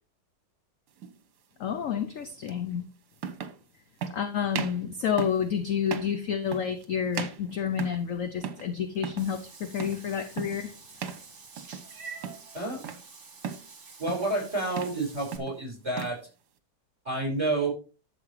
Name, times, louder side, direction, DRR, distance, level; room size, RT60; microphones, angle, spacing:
sound 1, 1.0-1.2 2.5-2.6 3.2-3.6 4.0-4.2 4.5-4.8 5.2-5.5 5.9-6.2 6.5-6.9 7.1-8.1 8.4-8.7 9.0-9.3 9.8-10.1 10.4-10.6 11.0-11.3 11.6-11.9 12.2-13.0 13.4-13.7 14.1-14.4 14.7-15.0 15.3-16.2, right 7 dB, 60° right, 1.5 m, -36 dB
voice 1, 1.6-2.8 4.1-10.7, left 8 dB, 60° left, 0.8 m, -29 dB
Meow / Water / Bathtub (filling or washing), 9.2-15.4, right 5 dB, 40° right, 1.9 m, -48 dB
voice 2, 14.0-16.2 17.1-17.7, right 2 dB, 15° right, 5.3 m, -29 dB
11.5 x 7.4 x 3.2 m
omnidirectional pair, 2.1 m